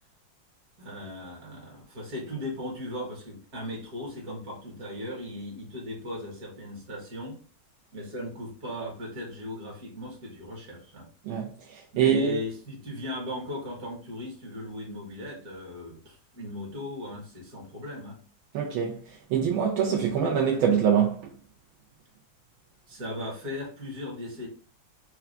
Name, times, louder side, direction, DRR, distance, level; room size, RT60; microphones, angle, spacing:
voice 1, 0.8-7.4 7.9-11.1 11.9-18.2 22.9-24.5, left 1 dB, 50° right, 2.0 m, -37 dB
voice 2, 12.0-12.4 18.5-19.0 19.3-21.2, right 7 dB, 80° right, 1.5 m, -24 dB
4.7 x 2.4 x 3.3 m
omnidirectional pair, 2.2 m